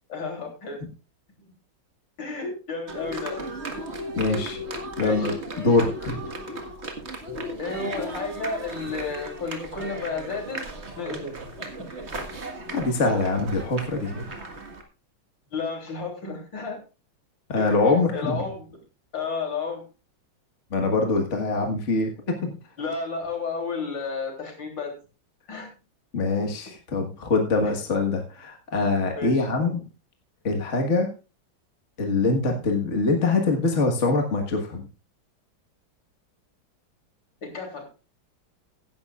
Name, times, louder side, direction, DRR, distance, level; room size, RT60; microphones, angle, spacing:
voice 1, 0.1-0.8 1.4-1.5 2.2-3.4 5.0-5.3 7.6-10.6 11.0-11.3 15.5-16.8 17.6-17.8 18.1-18.7 19.1-19.8 22.8-24.9 25.5-25.7 29.2-29.4 37.4-37.8, left 4 dB, 65° left, 3 dB, 4.0 m, -32 dB
sound 1, 2.9-14.8, right 1 dB, 35° right, 1.8 m, -36 dB
voice 2, 4.2-4.6 5.0-6.2 12.7-14.2 17.5-18.5 20.7-22.5 26.1-29.8 30.4-31.1 32.0-34.9, left 3 dB, 40° left, 3 dB, 1.8 m, -24 dB
16.0 x 11.0 x 2.4 m, 0.31 s
omnidirectional pair, 2.2 m